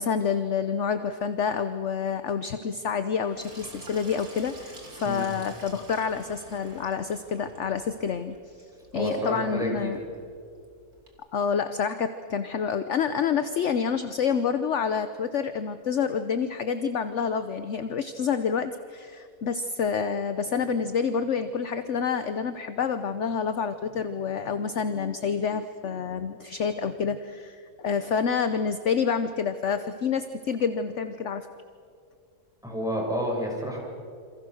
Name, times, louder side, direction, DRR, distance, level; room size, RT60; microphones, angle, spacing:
voice 1, 0.0-8.4 8.9-10.0 11.3-31.5, left 6 dB, 55° left, 10 dB, 1.1 m, -28 dB
Sink (filling or washing), 3.2-11.1, right 2 dB, 75° right, 3.5 m, -49 dB
voice 2, 8.9-10.0 32.6-33.8, equal, ahead, -3 dB, 7.0 m, -30 dB
28.5 x 26.5 x 6.5 m, 2.3 s
omnidirectional pair, 1.6 m